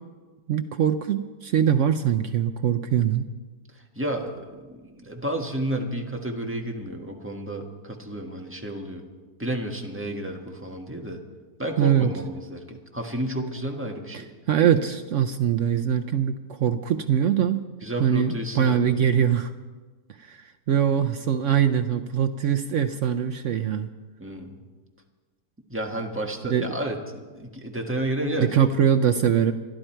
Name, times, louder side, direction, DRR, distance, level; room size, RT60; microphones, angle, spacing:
voice 1, 0.5-3.3 11.8-12.1 14.1-17.7 18.0-19.5 20.3-23.9 26.4-26.7 28.4-29.5, right 8 dB, 70° right, 8 dB, 0.7 m, -22 dB
voice 2, 3.9-9.0 9.4-11.2 11.6-14.2 17.8-19.0 24.2-24.6 25.7-28.6 28.9-29.0, right 1 dB, 10° right, 1 dB, 1.4 m, -31 dB
25.0 x 11.5 x 4.5 m, 1.4 s
omnidirectional pair, 1.9 m